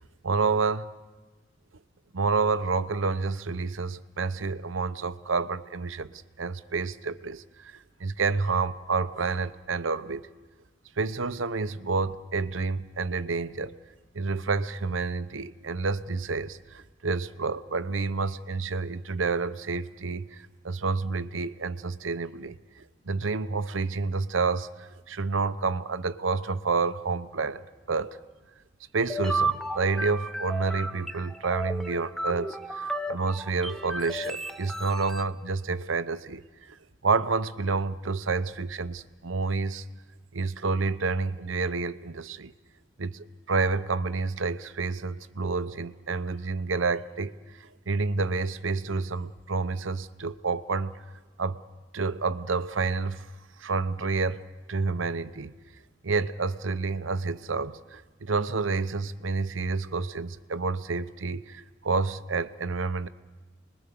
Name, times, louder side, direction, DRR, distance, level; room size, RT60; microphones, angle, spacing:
voice 1, 0.2-0.9 2.1-6.1 6.4-10.3 11.0-13.8 14.1-28.2 28.9-36.8 37.0-39.9 40.3-42.5 43.0-51.0 51.4-51.6 51.9-53.3 53.6-54.4 54.7-55.6 56.0-63.1, right 4 dB, 85° right, 13 dB, 0.8 m, -29 dB
sound 1, 29.0-35.2, right 2 dB, ahead, 0.8 m, -33 dB
29.5 x 21.5 x 6.9 m, 1.3 s
head